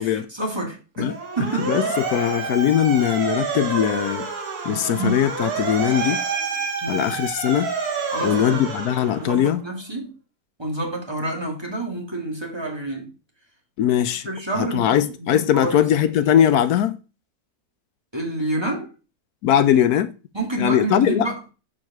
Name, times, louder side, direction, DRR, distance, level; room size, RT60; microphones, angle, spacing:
voice 1, 0.0-1.7 4.7-5.2 6.8-7.1 8.1-8.7 9.1-10.1 10.6-13.1 14.2-15.8 18.1-18.9 20.3-21.4, right 2 dB, 15° right, 2.1 m, -28 dB
Motor vehicle (road) / Siren, 1.0-9.6, right 4 dB, 75° right, 2.1 m, -28 dB
voice 2, 1.7-4.3 4.6-6.2 6.9-7.7 8.2-9.6 13.8-14.3 14.6-17.0 19.4-20.1 20.6-21.3, left 10 dB, 80° left, 1.1 m, -20 dB
6.5 x 4.9 x 6.0 m
omnidirectional pair, 1.6 m